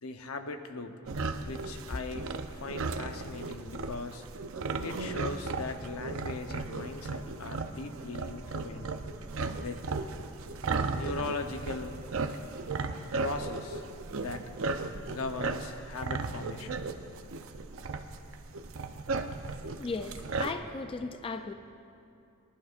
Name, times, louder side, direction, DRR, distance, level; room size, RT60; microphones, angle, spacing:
voice 1, 0.0-0.9 1.4-2.3 2.6-4.2 4.8-8.9 9.6-9.8 10.9-11.9 13.2-13.8 14.1-14.5 15.1-16.9, left 3 dB, 80° left, 7 dB, 0.8 m, -39 dB
sound 1, 1.1-20.5, right 3 dB, 65° right, 0.6 m, -36 dB
voice 2, 19.8-21.5, left 3 dB, 25° left, 8 dB, 0.4 m, -36 dB
25.5 x 11.0 x 2.5 m, 2.7 s
head